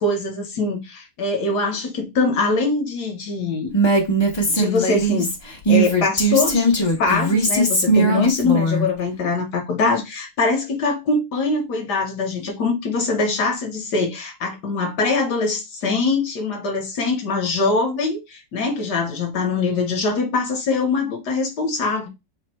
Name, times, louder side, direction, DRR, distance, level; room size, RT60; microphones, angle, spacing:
voice 1, 0.0-3.7 4.5-5.3 5.7-22.1, left 3 dB, 60° left, 1.3 m, -23 dB
Female speech woman speaking, 3.7-8.8, right 2 dB, 35° left, 0.4 m, -19 dB
4.2 x 2.1 x 4.1 m
omnidirectional pair, 2.3 m